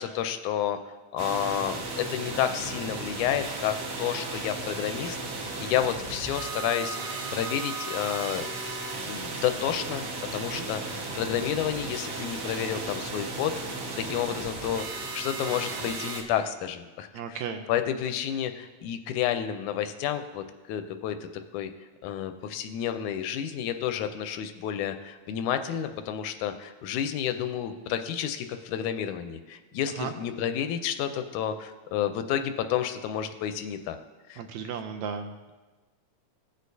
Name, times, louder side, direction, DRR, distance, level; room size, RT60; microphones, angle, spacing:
voice 1, 0.0-8.5 9.1-10.0 10.3-21.2 21.5-21.7 22.0-34.0 34.3-34.4, left 9 dB, 85° left, 9 dB, 2.0 m, -30 dB
sound 1, 1.2-16.2, right 3 dB, 55° right, 1.5 m, -35 dB
voice 2, 17.1-17.6 30.0-30.1 34.4-35.5, right 7 dB, 80° right, 6 dB, 1.7 m, -35 dB
16.5 x 6.4 x 2.7 m, 1.2 s
omnidirectional pair, 3.5 m